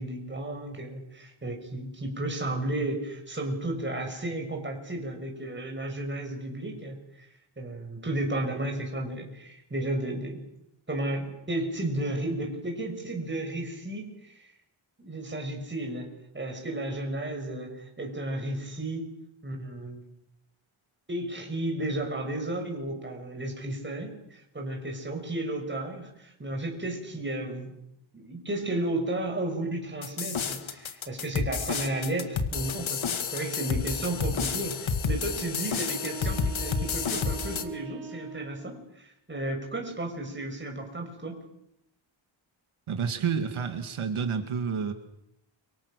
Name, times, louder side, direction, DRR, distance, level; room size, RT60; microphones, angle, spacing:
voice 1, 0.0-7.3 7.6-10.4 10.9-14.5 15.0-16.1 16.3-19.1 19.4-20.0 21.1-27.7 28.1-41.4, right 1 dB, 25° right, 2 dB, 6.6 m, -33 dB
sound 1, 30.0-37.6, left 5 dB, 70° left, 2.2 m, -30 dB
sound 2, 35.8-38.8, right 6 dB, 65° right, 5.7 m, -42 dB
voice 2, 42.9-44.9, right 6 dB, 85° right, 7 dB, 2.1 m, -29 dB
29.5 x 25.5 x 6.6 m, 0.80 s
wide cardioid pair, 145°, 48 cm